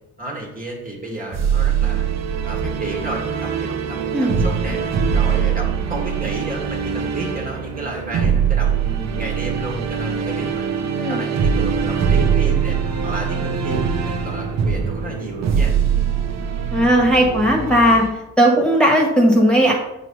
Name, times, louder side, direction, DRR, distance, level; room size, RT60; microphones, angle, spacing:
voice 1, 0.2-2.1 2.4-4.8 5.1-10.7 11.1-12.8 13.0-13.9 14.2-15.7, right 2 dB, 30° right, -1 dB, 1.7 m, -31 dB
sound 1, 1.3-18.1, right 7 dB, 60° right, 0.8 m, -22 dB
voice 2, 16.7-18.0 18.4-19.7, equal, 5° left, -1 dB, 1.7 m, -16 dB
7.6 x 3.2 x 5.5 m, 0.88 s
cardioid pair, 90°, 30 cm